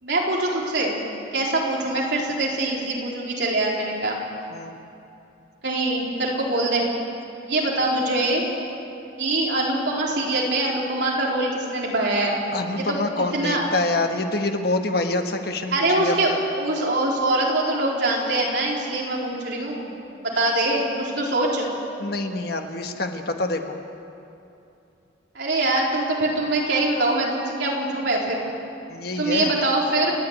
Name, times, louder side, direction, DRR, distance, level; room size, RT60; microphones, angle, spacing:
voice 1, 0.0-1.0 1.3-4.2 5.6-6.8 7.5-8.4 9.2-12.4 12.8-13.7 15.7-19.9 20.2-21.7 25.3-28.4 29.2-30.1, right 2 dB, 65° right, -3 dB, 4.2 m, -23 dB
voice 2, 12.5-16.4 22.0-23.7 28.9-29.5, left 2 dB, 55° left, 5 dB, 1.4 m, -26 dB
29.0 x 10.5 x 9.6 m, 2.7 s
head